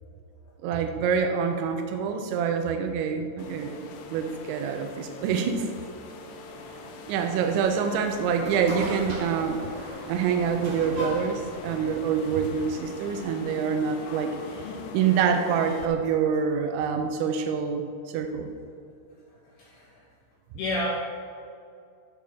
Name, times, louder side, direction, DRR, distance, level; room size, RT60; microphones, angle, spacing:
voice 1, 0.6-5.7 7.1-9.6 10.1-14.7 14.9-18.5, right 6 dB, 90° right, 5 dB, 2.9 m, -26 dB
sound 1, 3.4-15.9, left 4 dB, 90° left, 3.2 m, -42 dB
sound 2, 7.9-13.2, equal, 50° right, 2.0 m, -37 dB
voice 2, 19.6-20.0 20.5-20.9, left 2 dB, 70° left, -4 dB, 2.8 m, -30 dB
14.0 x 6.5 x 3.5 m, 2.5 s
omnidirectional pair, 5.3 m